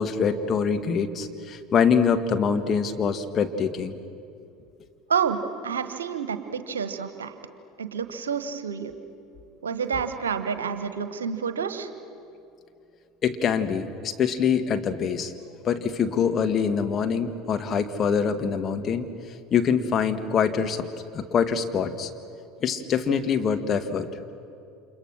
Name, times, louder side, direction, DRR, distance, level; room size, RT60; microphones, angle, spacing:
voice 1, 0.0-4.0 13.2-15.4 15.6-19.1 19.5-20.9 21.1-22.1 22.6-24.1, left 6 dB, 35° left, 6 dB, 1.9 m, -24 dB
voice 2, 5.1-7.3 7.8-8.9 9.6-11.9, right 6 dB, 75° right, 10 dB, 1.4 m, -29 dB
30.0 x 27.0 x 6.4 m, 2.5 s
figure-of-eight pair, 70°, 0 cm